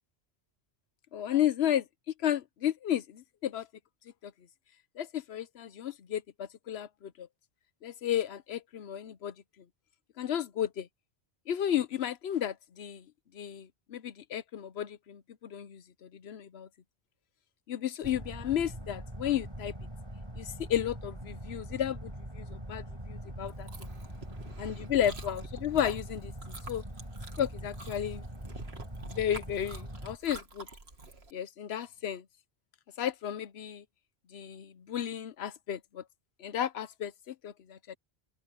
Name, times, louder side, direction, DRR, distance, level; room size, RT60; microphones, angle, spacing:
voice 1, 1.1-1.8 2.2-3.7 4.2-4.3 5.0-7.3 7.8-9.3 10.2-10.9 11.5-13.0 13.3-16.7 17.7-19.7 20.4-23.9 24.6-26.3 26.7-26.8 27.4-28.2 29.1-30.7 31.3-32.2 33.0-33.8 34.3-36.0 36.4-37.9, left 10 dB, 80° left, 1.0 m, -33 dB
sound 1, 18.0-30.2, right 1 dB, 25° right, 4.2 m, -43 dB
Chewing mastication, 23.5-31.3, right 3 dB, 90° right, 2.5 m, -48 dB
open air
omnidirectional pair, 1.0 m